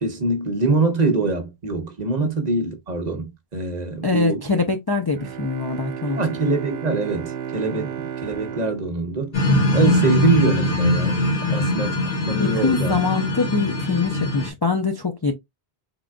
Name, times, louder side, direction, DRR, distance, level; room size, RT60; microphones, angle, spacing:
voice 1, 0.0-4.5 6.2-9.4 9.7-11.2 11.5-12.0 12.3-12.9, right 3 dB, 45° right, 0.9 m, -24 dB
voice 2, 4.0-6.2 7.7-7.9 11.4-11.6 12.4-15.3, left 4 dB, 35° left, 0.4 m, -24 dB
Bowed string instrument, 5.2-10.1, right 9 dB, 80° right, 0.9 m, -34 dB
sound 1, 9.3-14.5, left 1 dB, 70° left, 1.4 m, -21 dB
3.7 x 3.6 x 2.2 m
omnidirectional pair, 1.0 m